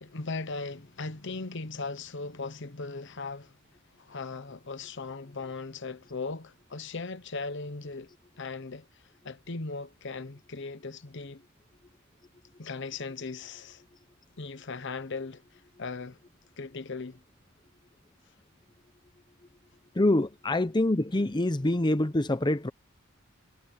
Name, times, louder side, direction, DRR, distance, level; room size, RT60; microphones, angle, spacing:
voice 1, 0.0-3.5 4.0-11.4 12.6-13.8 14.4-16.2 16.6-17.2, left 3 dB, 60° left, 1.0 m, -38 dB
voice 2, 20.0-22.7, left 1 dB, 20° left, 0.7 m, -25 dB
head